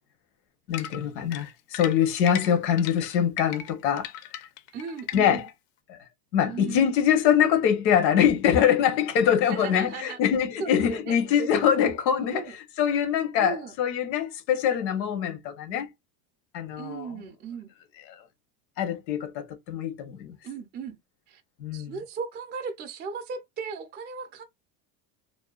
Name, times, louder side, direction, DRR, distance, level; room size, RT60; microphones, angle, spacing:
voice 1, 0.7-4.5 5.1-5.4 5.9-6.0 6.3-12.5 12.8-15.9 16.5-17.1 18.8-20.3 21.6-21.9, left 9 dB, 90° left, 1.0 m, -24 dB
sound 1, 0.7-5.5, left 9 dB, 70° left, 0.6 m, -37 dB
voice 2, 4.7-5.4 6.4-6.9 9.5-10.2 10.6-11.5 11.8-12.0 12.3-12.6 13.3-13.7 16.8-17.7 20.4-21.0 21.3-21.4 21.7-24.4, right 5 dB, 20° right, 0.4 m, -37 dB
2.7 x 2.1 x 2.3 m
supercardioid pair, 120°, 49 cm